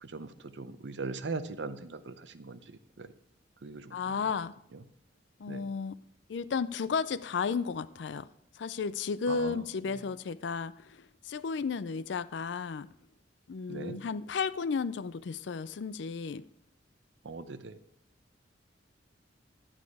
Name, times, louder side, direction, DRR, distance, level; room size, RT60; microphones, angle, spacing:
voice 1, 0.0-2.6 3.0-3.1 3.6-4.0 5.5-5.6 9.3-9.6 13.7-14.0 17.2-17.8, right 3 dB, 75° right, 0.7 m, -39 dB
voice 2, 3.9-4.5 5.4-6.0 6.3-8.3 8.6-12.9 13.5-16.4, left 5 dB, 70° left, 0.4 m, -33 dB
11.5 x 8.9 x 4.8 m
head